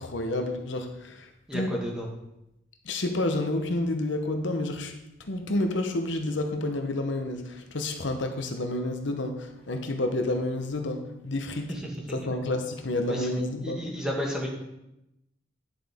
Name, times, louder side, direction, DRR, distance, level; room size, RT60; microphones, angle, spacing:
voice 1, 0.0-1.8 2.8-4.9 5.2-11.8 12.1-13.8, left 2 dB, 65° left, 5 dB, 0.9 m, -30 dB
voice 2, 1.5-2.1 11.7-11.9 13.1-13.3 13.6-14.5, equal, 5° right, -1 dB, 1.5 m, -32 dB
10.5 x 7.6 x 3.6 m, 0.88 s
head